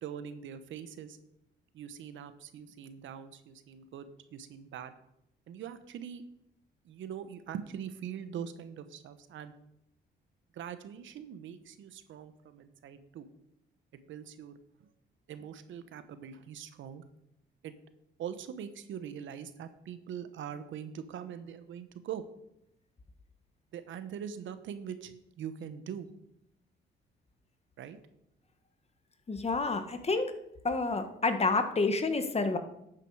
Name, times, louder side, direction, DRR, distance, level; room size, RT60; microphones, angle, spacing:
voice 1, 0.0-1.2 1.7-4.9 5.5-6.2 6.8-9.5 10.5-13.3 13.9-14.9 15.3-17.0 17.6-17.7 18.2-22.2 23.7-26.1 27.8-28.0, right 8 dB, 75° right, 11 dB, 1.1 m, -42 dB
voice 2, 29.3-30.3 30.6-32.6, left 3 dB, 30° left, 8 dB, 1.4 m, -29 dB
11.5 x 9.0 x 4.8 m, 0.81 s
cardioid pair, 90°, 20 cm